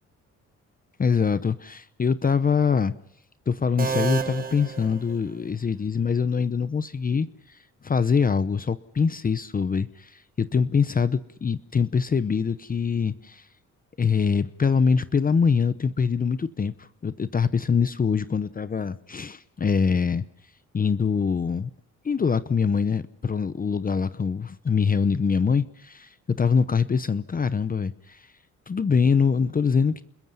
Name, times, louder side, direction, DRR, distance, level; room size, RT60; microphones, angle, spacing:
voice 1, 1.0-2.9 3.5-7.6 7.8-13.4 14.0-20.2 20.7-21.7 22.0-28.3 28.7-30.0, left 6 dB, 30° left, 14 dB, 0.8 m, -24 dB
sound 1, 3.8-5.7, right 5 dB, 30° right, 1.4 m, -30 dB
28.0 x 21.5 x 5.6 m, 0.76 s
cardioid pair, 90°, 30 cm